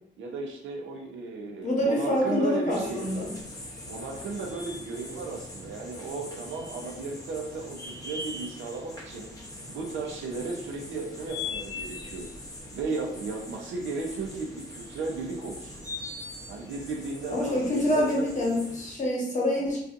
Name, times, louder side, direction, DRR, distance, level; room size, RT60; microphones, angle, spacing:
voice 1, 0.2-3.2 3.9-9.3 9.7-12.3 12.7-15.9 16.5-18.3, right 3 dB, 80° right, 1 dB, 0.5 m, -35 dB
voice 2, 1.6-3.3 17.3-19.8, left 1 dB, 40° left, -3 dB, 1.0 m, -26 dB
sound 1, 2.7-18.9, left 2 dB, 20° left, 0.6 m, -41 dB
2.6 x 2.3 x 2.5 m, 0.80 s
cardioid pair, 100°, 20 cm